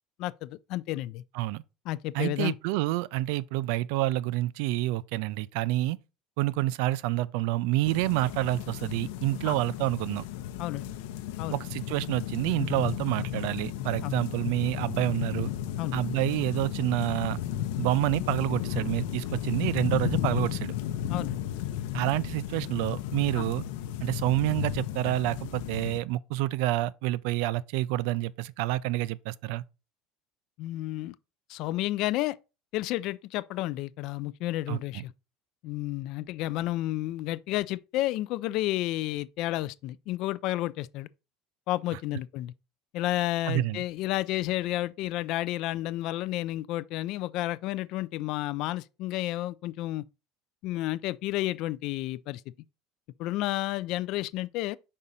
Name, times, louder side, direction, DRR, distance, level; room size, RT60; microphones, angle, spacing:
voice 1, 0.2-1.2 1.9-2.6 9.5-9.6 10.6-10.8 11.4-11.6 14.0-14.2 15.8-16.0 21.1-21.4 23.4-23.5 30.6-31.1 31.5-32.4 32.7-35.1 35.6-41.1 41.7-42.5 42.9-50.0 50.6-52.4 53.2-54.8, left 16 dB, 45° left, 0.3 m, -31 dB
voice 2, 2.1-6.0 6.4-10.3 11.5-15.5 15.9-17.4 17.8-20.7 21.9-23.6 24.0-29.6 34.7-35.0 43.5-43.8, right 17 dB, 65° right, 0.3 m, -28 dB
sound 1, 7.8-26.0, left 11 dB, 80° left, 0.7 m, -34 dB
5.4 x 4.9 x 4.1 m
cardioid pair, 175°, 0 cm